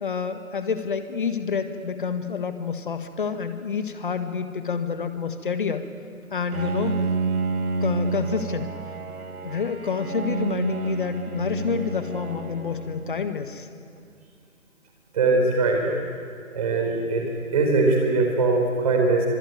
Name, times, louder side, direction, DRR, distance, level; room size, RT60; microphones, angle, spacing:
voice 1, 0.0-5.8 6.3-6.9 7.8-8.8 9.4-13.7, left 6 dB, 35° left, 9 dB, 1.6 m, -28 dB
Bowed string instrument, 6.5-13.6, right 3 dB, 85° right, 2.1 m, -29 dB
voice 2, 15.1-15.8 16.5-17.3 17.5-19.3, right 3 dB, 25° right, 2 dB, 4.6 m, -21 dB
25.0 x 22.0 x 9.6 m, 2.3 s
figure-of-eight pair, 165°, 42 cm